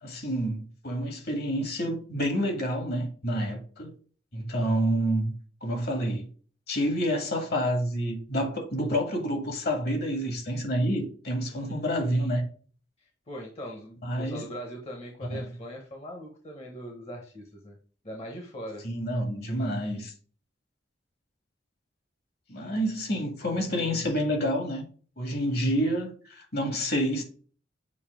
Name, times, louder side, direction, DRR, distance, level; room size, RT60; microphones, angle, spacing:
voice 1, 0.0-3.9 4.3-5.3 5.6-6.3 6.7-12.5 14.0-14.5 15.3-15.4 18.8-20.1 22.5-24.8 25.2-27.2, equal, 55° left, 1.7 m, -28 dB
voice 2, 11.5-11.8 13.0-17.8 18.0-18.8, equal, 35° left, 1.1 m, -41 dB
7.1 x 2.7 x 5.0 m
head